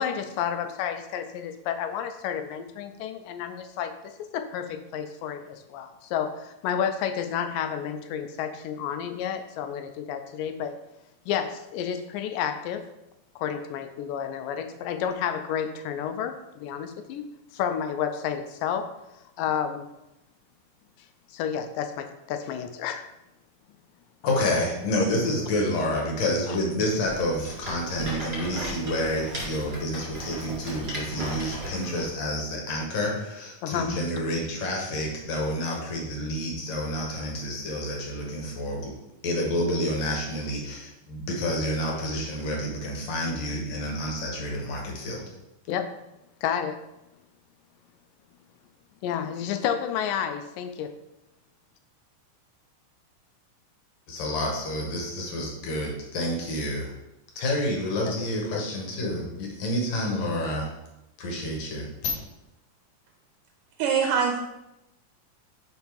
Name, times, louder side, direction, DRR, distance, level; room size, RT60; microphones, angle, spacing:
voice 1, 0.0-10.8 11.3-12.9 13.4-17.2 17.5-18.9 19.4-19.8 21.3-23.1 26.5-26.6 33.6-34.0 45.7-45.9 46.4-46.8 49.0-50.9 58.5-58.6, left 8 dB, 80° left, 8 dB, 2.2 m, -30 dB
voice 2, 24.2-38.9 39.2-45.2 54.1-56.9 57.4-60.7 61.2-62.1, left 1 dB, 60° left, 0 dB, 2.2 m, -29 dB
Rattle, 27.0-32.1, right 1 dB, 20° right, 2.0 m, -36 dB
voice 3, 63.8-64.4, right 6 dB, 80° right, 3 dB, 2.1 m, -23 dB
5.6 x 5.2 x 4.6 m, 0.91 s
omnidirectional pair, 3.9 m